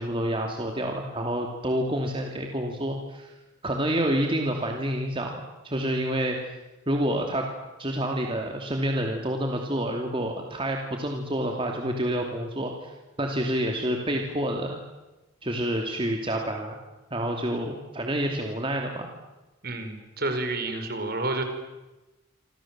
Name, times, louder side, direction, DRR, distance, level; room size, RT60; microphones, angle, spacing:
voice 1, 0.0-3.3 3.6-6.4 6.9-7.5 7.8-12.9 13.2-14.8 15.4-16.8 17.1-19.1, right 1 dB, 25° right, 2 dB, 2.8 m, -28 dB
voice 2, 19.6-21.4, right 2 dB, 50° right, 6 dB, 5.1 m, -29 dB
28.0 x 27.0 x 7.6 m, 1.1 s
head